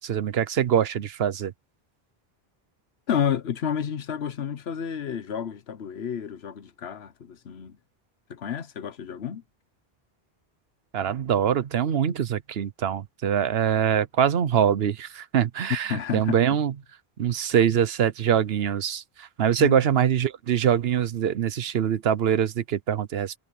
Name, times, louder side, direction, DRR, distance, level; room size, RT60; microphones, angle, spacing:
voice 1, 0.0-1.5 10.9-16.7 17.2-23.4, right 9 dB, 75° right, 1.0 m, -24 dB
voice 2, 3.1-7.8 8.3-9.4 15.9-16.6 19.6-19.9, left 8 dB, 85° left, 1.2 m, -30 dB
omnidirectional pair, 1.0 m